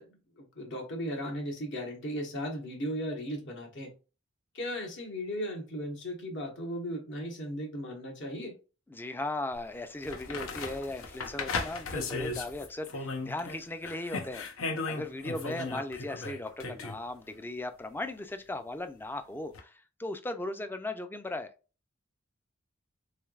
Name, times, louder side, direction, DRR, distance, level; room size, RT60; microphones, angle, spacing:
voice 1, 0.0-3.9 4.5-8.6 15.4-15.8, equal, 60° left, 1.2 m, -37 dB
voice 2, 8.9-21.5, left 2 dB, 10° left, 0.3 m, -37 dB
sound 1, 9.5-9.6 10.0-13.6 13.8-17.0 19.5-19.6, left 3 dB, 80° left, 0.7 m, -36 dB
3.8 x 3.3 x 2.3 m
head